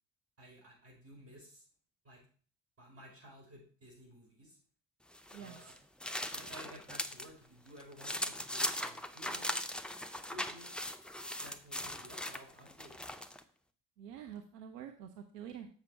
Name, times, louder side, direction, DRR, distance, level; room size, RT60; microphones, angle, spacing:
voice 1, 0.4-1.6 2.0-2.2 2.8-4.6 5.4-5.7 6.3-9.7 10.1-10.7 11.4-13.1, equal, 30° right, -1 dB, 4.7 m, -54 dB
sound 1, 5.1-7.3 7.7-13.4, left 1 dB, ahead, 0.5 m, -39 dB
voice 2, 5.3-5.7 14.0-15.7, right 9 dB, 75° right, 5 dB, 0.8 m, -47 dB
7.4 x 5.7 x 4.7 m, 0.43 s
figure-of-eight pair, 50°, 48 cm